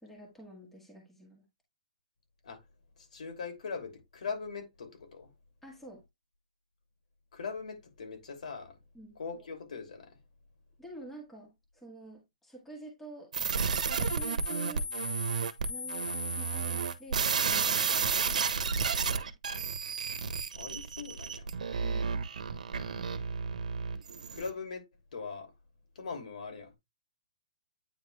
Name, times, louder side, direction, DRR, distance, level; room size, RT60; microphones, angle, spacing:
voice 1, 0.0-1.4 5.6-6.0 8.9-9.2 10.8-13.3 14.0-14.9 15.7-18.6 19.0-19.3 21.8-22.1, right 2 dB, 5° left, 1.7 m, -49 dB
voice 2, 3.0-5.3 7.3-8.8 9.2-10.2 20.5-21.5 24.3-24.9 25.1-25.5 25.9-26.8, left 5 dB, 70° left, 3.0 m, -41 dB
sound 1, 13.3-24.5, right 5 dB, 80° right, 1.2 m, -32 dB
9.1 x 3.6 x 3.3 m
hypercardioid pair, 165°, 4 cm